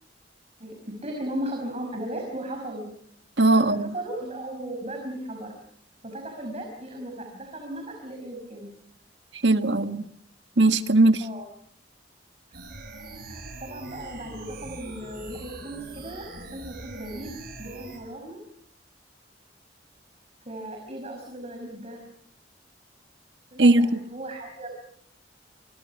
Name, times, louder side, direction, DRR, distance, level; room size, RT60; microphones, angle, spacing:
voice 1, 0.6-2.9 3.5-5.5 6.0-8.7 11.2-11.5 12.5-12.6 13.3-17.3 17.6-18.4 20.4-22.0 23.5-24.7, right 1 dB, 35° right, 2 dB, 5.3 m, -36 dB
voice 2, 3.4-3.9 9.4-10.0 10.6-11.2 23.6-23.9, right 2 dB, 75° right, 9 dB, 1.6 m, -19 dB
sound 1, 12.5-18.0, right 2 dB, 60° right, 6.2 m, -42 dB
28.0 x 23.5 x 5.8 m, 0.67 s
head